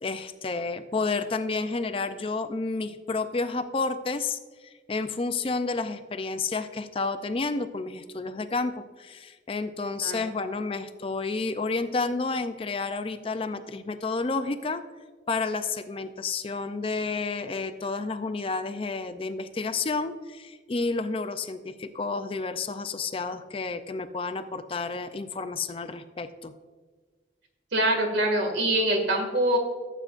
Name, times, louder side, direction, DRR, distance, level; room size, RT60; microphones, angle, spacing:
voice 1, 0.0-14.8 15.3-26.5, left 3 dB, 30° left, 10 dB, 0.4 m, -30 dB
voice 2, 27.7-29.6, right 1 dB, 75° right, 3 dB, 2.1 m, -24 dB
14.5 x 7.6 x 2.5 m, 1.4 s
head